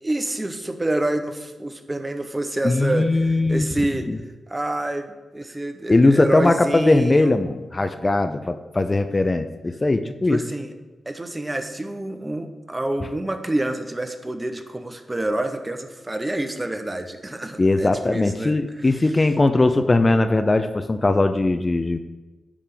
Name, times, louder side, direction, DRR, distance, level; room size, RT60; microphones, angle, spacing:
voice 1, 0.0-4.1 4.5-7.4 10.3-10.7 11.1-18.9, right 1 dB, 25° right, 7 dB, 1.0 m, -27 dB
voice 2, 2.6-3.7 4.1-4.2 5.9-10.4 17.6-22.0, left 2 dB, 30° left, 9 dB, 0.6 m, -19 dB
10.0 x 3.6 x 6.8 m, 1.2 s
supercardioid pair, 50°, 0 cm